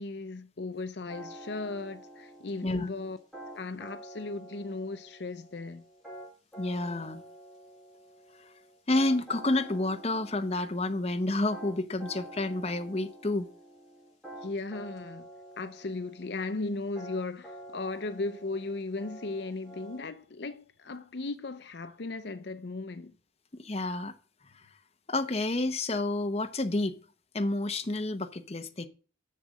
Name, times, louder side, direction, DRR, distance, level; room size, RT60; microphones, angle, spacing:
voice 1, 0.0-3.2 3.5-5.8 14.4-15.2 15.6-23.1, left 3 dB, 65° left, 0.6 m, -36 dB
sound 1, 1.1-20.0, right 1 dB, ahead, 5.4 m, -48 dB
voice 2, 6.6-7.2 8.9-13.5 23.5-24.1 24.5-24.7 25.1-27.0 27.3-28.9, left 2 dB, 35° left, 0.8 m, -29 dB
6.7 x 6.6 x 7.5 m
head